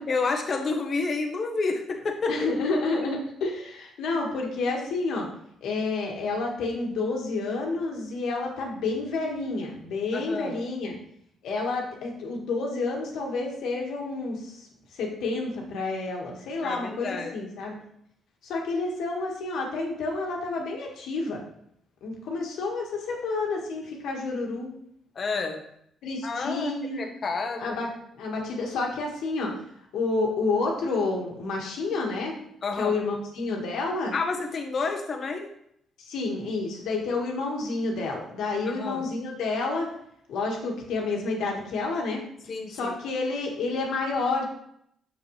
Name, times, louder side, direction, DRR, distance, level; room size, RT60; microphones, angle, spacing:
voice 1, 0.1-2.4 10.1-10.6 16.6-17.3 25.1-25.6 26.2-26.7 27.0-27.8 32.6-32.9 34.1-35.5 38.7-39.0 42.5-42.9, left 4 dB, 45° left, 4 dB, 1.2 m, -29 dB
voice 2, 2.3-5.3 5.6-11.0 11.4-17.8 18.4-21.4 22.0-24.7 26.0-27.1 27.6-29.6 29.9-32.3 32.8-34.1 36.0-39.9 40.3-42.2 42.7-44.4, left 3 dB, 80° left, 0 dB, 1.7 m, -29 dB
6.6 x 6.5 x 3.2 m, 0.72 s
cardioid pair, 90°, 0 cm